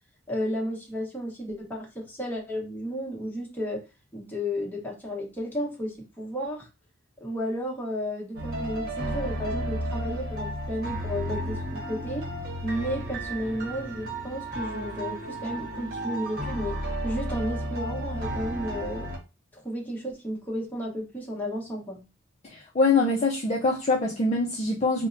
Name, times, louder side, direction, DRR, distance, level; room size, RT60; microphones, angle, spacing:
voice 1, 0.3-3.8 4.1-6.7 7.2-12.3 12.6-16.7 17.0-19.1 19.5-22.0, equal, 10° left, 1.0 m, -33 dB
sound 1, 8.3-19.2, equal, 50° right, 1.0 m, -33 dB
voice 2, 22.5-25.1, left 3 dB, 30° left, 0.4 m, -24 dB
5.0 x 2.1 x 2.5 m
head